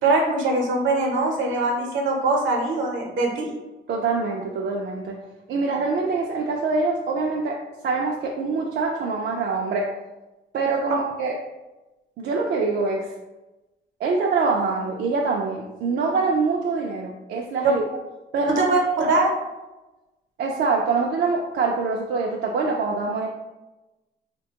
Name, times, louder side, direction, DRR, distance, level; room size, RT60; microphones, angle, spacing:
voice 1, 0.0-3.5 17.6-17.7 18.6-18.8 19.1-19.3, right 2 dB, 75° right, 1 dB, 0.8 m, -22 dB
voice 2, 3.9-5.2 5.5-9.9 10.5-11.3 12.2-13.1 14.0-17.8 18.3-18.7 19.0-19.1 20.4-23.3, right 4 dB, 60° right, -1 dB, 0.4 m, -24 dB
3.4 x 2.2 x 2.8 m, 1.1 s
cardioid pair, 90°, 20 cm